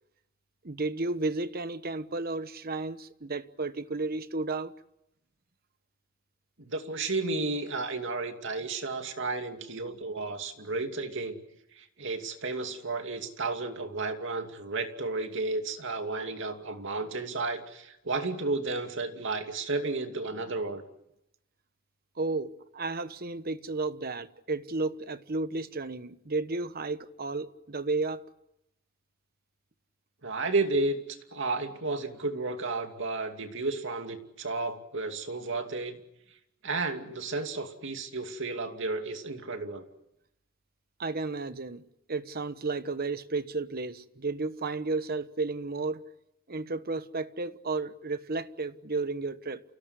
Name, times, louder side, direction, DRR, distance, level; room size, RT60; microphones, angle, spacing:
voice 1, 0.6-4.7 22.2-28.2 41.0-46.0 46.5-49.6, right 3 dB, 45° right, 1.1 m, -33 dB
voice 2, 6.6-11.4 11.7-20.8 30.2-36.0 36.6-39.8, right 3 dB, 60° right, 2.7 m, -32 dB
29.0 x 17.5 x 9.9 m
head